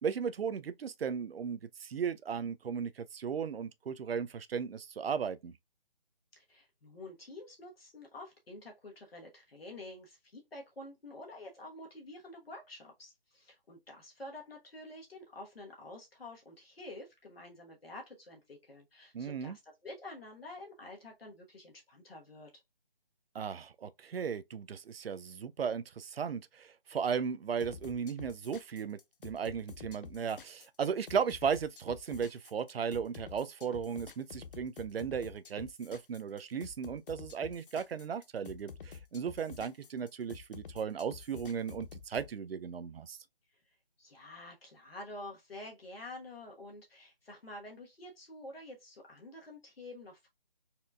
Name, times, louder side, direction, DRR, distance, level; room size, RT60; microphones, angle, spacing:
voice 1, 0.0-5.5 19.1-19.6 23.3-43.2, right 7 dB, 80° right, 0.5 m, -36 dB
voice 2, 6.3-22.5 44.0-50.3, left 2 dB, 80° left, 1.4 m, -49 dB
sound 1, 27.6-42.3, left 6 dB, 65° left, 0.5 m, -49 dB
4.2 x 2.3 x 2.5 m
figure-of-eight pair, 170°, 29 cm